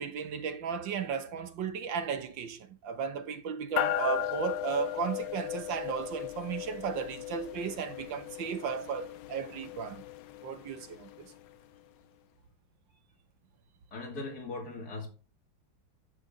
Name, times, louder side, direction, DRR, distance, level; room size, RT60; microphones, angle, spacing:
voice 1, 0.0-10.0 10.4-11.3, right 6 dB, 70° right, 1.7 m, -35 dB
sound 1, 3.8-11.5, left 13 dB, 85° left, 1.5 m, -37 dB
voice 2, 13.9-15.1, left 3 dB, 50° left, 2.9 m, -39 dB
10.0 x 6.3 x 3.7 m
omnidirectional pair, 2.2 m